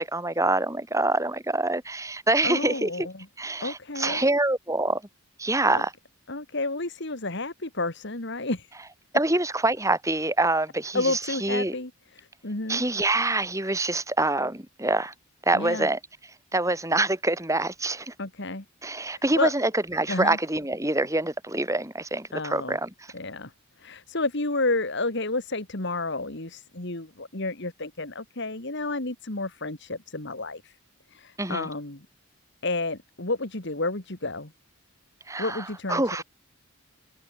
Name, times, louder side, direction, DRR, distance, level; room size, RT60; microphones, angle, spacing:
voice 1, 0.0-3.1 3.4-5.0 5.4-5.9 9.1-11.7 12.7-15.1 15.5-16.0 16.5-18.1 18.8-22.9 31.4-31.7 35.3-36.2, right 2 dB, 15° right, 4.2 m, -25 dB
voice 2, 2.4-3.3 3.6-4.4 5.7-5.8 6.3-8.7 10.9-12.8 15.5-15.9 18.2-18.6 19.1-19.5 20.1-20.4 22.3-22.8 23.1-23.5 23.8-30.7 31.1-32.1 32.6-34.5 35.4-36.0, left 2 dB, 55° left, 2.3 m, -31 dB
head